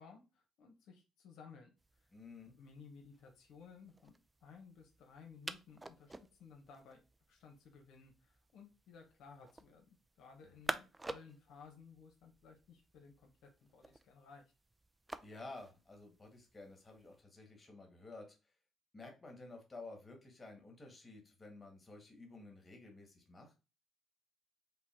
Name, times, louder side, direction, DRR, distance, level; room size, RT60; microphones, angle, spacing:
voice 1, 0.0-1.7 2.4-4.1 4.4-7.0 7.3-9.9 10.2-14.4, left 5 dB, 85° left, 2 dB, 1.0 m, -58 dB
sound 1, 1.8-17.2, right 2 dB, 15° right, 0.4 m, -51 dB
voice 2, 2.1-2.5 10.4-10.6 15.2-18.4 18.9-23.5, left 2 dB, 25° left, 2 dB, 1.7 m, -53 dB
5.4 x 2.2 x 4.3 m, 0.30 s
cardioid pair, 90°, 0 cm